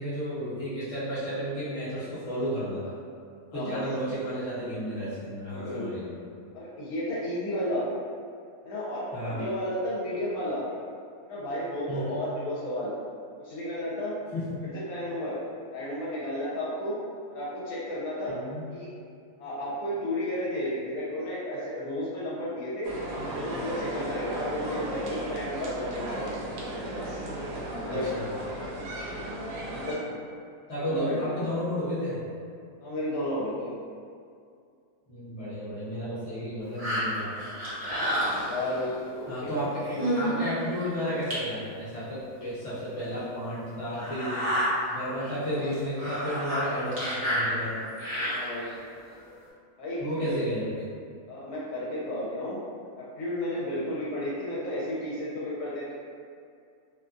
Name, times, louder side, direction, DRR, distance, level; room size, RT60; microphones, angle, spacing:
voice 1, 0.0-3.0 3.5-6.1 9.1-9.4 11.9-12.2 14.3-14.5 18.3-18.6 27.9-28.2 30.7-32.2 35.1-37.4 39.3-44.5 44.9-47.8 50.0-50.9, equal, 25° left, -12 dB, 0.9 m, -32 dB
voice 2, 3.5-3.8 5.5-6.0 6.5-7.9 8.6-10.6 11.2-12.9 13.4-14.2 14.6-15.4 15.7-16.9 17.3-18.3 18.7-18.9 19.4-22.9 23.3-26.4 27.0-27.2 27.8-28.1 29.7-30.0 30.8-31.3 32.8-33.7 38.4-39.5 39.8-40.0 45.5-45.7 48.1-48.7 49.8-50.4 51.3-52.6 53.0-55.9, left 1 dB, 75° left, -8 dB, 1.1 m, -33 dB
sound 1, 22.8-29.9, right 1 dB, 80° right, 1.1 m, -35 dB
sound 2, 36.8-38.9 39.5-39.6 39.9-40.4 40.8-40.9 41.3-41.4 42.4-42.5 43.0-43.1 43.9-44.7 45.2-45.3 45.6-48.7 49.3-49.4, equal, 40° right, 0.5 m, -30 dB
2.7 x 2.2 x 2.5 m, 2.3 s
omnidirectional pair, 1.7 m